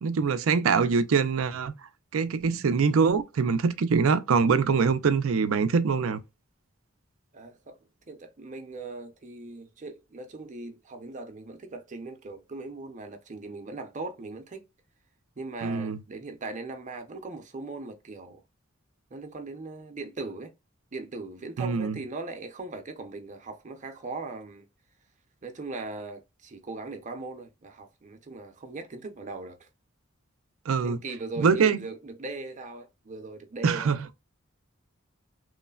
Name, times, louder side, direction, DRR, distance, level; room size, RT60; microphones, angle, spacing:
voice 1, 0.0-1.7 2.1-6.2 15.6-16.0 21.6-22.0 30.7-31.0 31.4-31.8 33.6-34.1, right 5 dB, 80° right, 0.4 m, -24 dB
voice 2, 7.3-7.8 8.1-14.7 15.4-18.4 19.1-20.5 20.9-24.7 25.4-29.7 30.8-34.0, right 3 dB, 35° right, 0.6 m, -39 dB
3.1 x 2.1 x 2.3 m
head